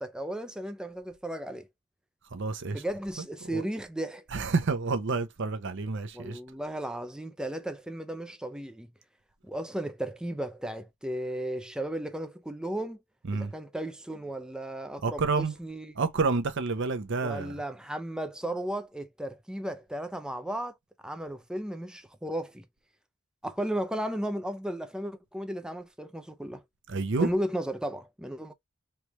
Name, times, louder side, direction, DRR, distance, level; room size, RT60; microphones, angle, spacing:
voice 1, 0.0-1.7 2.7-4.3 6.1-8.9 9.4-13.0 13.3-15.9 17.2-20.8 21.0-22.6 23.4-26.6 27.2-28.5, right 1 dB, 5° right, 0.4 m, -35 dB
voice 2, 2.3-2.8 3.5-3.6 4.3-6.4 13.3-13.5 15.0-15.5 16.0-17.5 26.9-27.3, right 4 dB, 55° right, 0.6 m, -29 dB
3.3 x 3.1 x 2.9 m
head